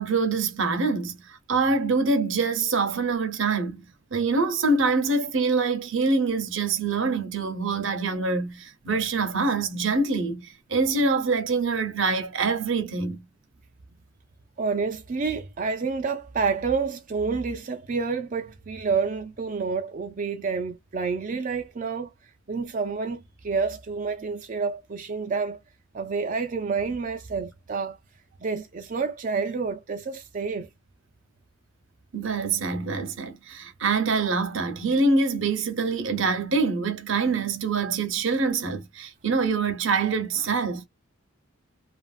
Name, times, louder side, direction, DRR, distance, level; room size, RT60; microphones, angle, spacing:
voice 1, 0.0-3.8 4.1-13.2 32.1-40.9, right 4 dB, 65° right, 0.8 m, -25 dB
voice 2, 14.6-22.1 22.5-25.6 25.9-28.0 28.4-30.7, right 5 dB, 40° right, 0.4 m, -29 dB
2.9 x 2.5 x 2.4 m
head